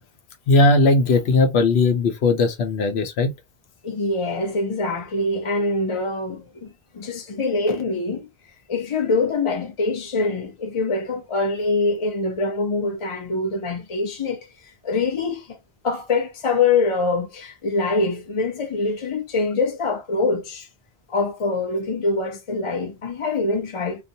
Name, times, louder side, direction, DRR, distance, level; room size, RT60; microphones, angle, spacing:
voice 1, 0.5-3.3, left 2 dB, 80° left, 0.9 m, -18 dB
voice 2, 3.8-8.2 8.7-14.5 14.8-15.6 15.8-20.7 21.1-24.0, left 3 dB, 45° left, 0.4 m, -24 dB
2.4 x 2.1 x 2.6 m
omnidirectional pair, 1.1 m